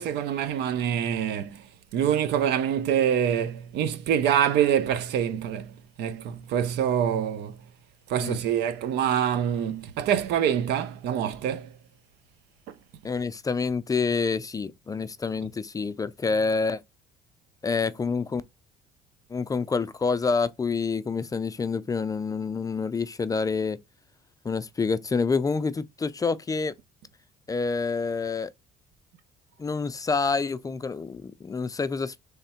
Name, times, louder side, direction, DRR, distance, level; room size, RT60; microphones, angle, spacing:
voice 1, 0.0-1.6 1.9-7.6 8.1-11.7, right 9 dB, 80° right, 0.8 m, -25 dB
voice 2, 13.0-16.8 17.6-18.4 19.3-23.8 24.4-26.7 27.5-28.5 29.6-32.1, left 4 dB, 20° left, 0.4 m, -27 dB
3.5 x 3.3 x 4.3 m
cardioid pair, 110°, 17 cm